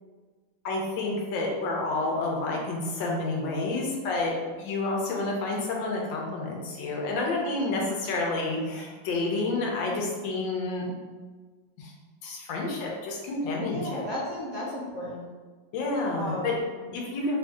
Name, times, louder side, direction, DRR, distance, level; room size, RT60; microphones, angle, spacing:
voice 1, 0.6-4.3 4.6-10.9 11.8-11.9 12.2-14.0 15.7-16.5 16.9-17.4, left 2 dB, 80° left, -1 dB, 1.4 m, -29 dB
voice 2, 13.6-15.3 16.1-17.0, left 1 dB, 40° right, -8 dB, 1.3 m, -35 dB
3.4 x 2.6 x 3.4 m, 1.4 s
omnidirectional pair, 2.1 m